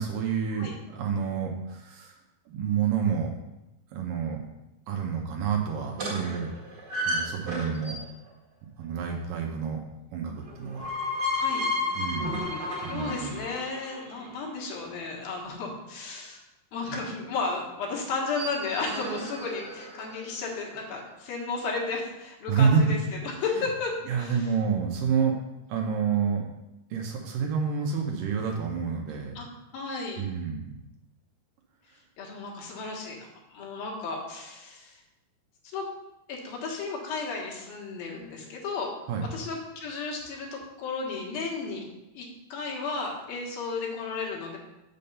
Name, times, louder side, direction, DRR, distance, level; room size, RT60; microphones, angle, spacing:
voice 1, 0.0-2.2 2.5-3.3 3.9-4.4 4.9-6.5 7.0-8.0 8.8-9.8 10.1-10.9 12.0-12.5 12.8-13.3 22.5-23.0 23.2-23.7 24.1-25.4 25.7-26.5 26.9-29.4 30.2-30.7 39.1-39.3, right 6 dB, 75° right, 2 dB, 2.3 m, -28 dB
sound 1, 5.9-8.3 10.5-14.5 18.1-20.4, left 2 dB, 40° right, 1.7 m, -32 dB
voice 2, 11.3-11.7 12.9-16.4 16.7-23.0 23.2-24.4 29.4-29.5 29.7-30.2 32.2-35.0 35.7-35.9 36.3-38.9 39.3-41.8 42.1-44.6, left 4 dB, 70° left, -1 dB, 3.2 m, -34 dB
7.1 x 6.8 x 5.4 m, 0.96 s
omnidirectional pair, 4.4 m